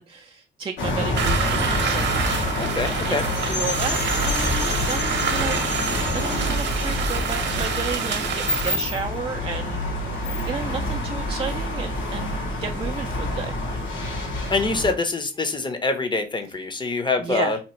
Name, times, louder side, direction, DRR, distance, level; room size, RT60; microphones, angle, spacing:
voice 1, 0.0-2.5 3.1-5.7 6.1-13.5 17.2-17.6, right 5 dB, 30° right, 2 dB, 0.3 m, -32 dB
Traffic noise at main street in Berlin, 0.8-14.9, left 1 dB, 80° left, 1.4 m, -27 dB
sound 1, 1.2-8.8, right 5 dB, 70° right, 0.7 m, -27 dB
voice 2, 2.6-3.2 14.5-17.6, left 3 dB, 25° left, 7 dB, 0.7 m, -25 dB
2.9 x 2.4 x 4.3 m, 0.31 s
cardioid pair, 95°, 19 cm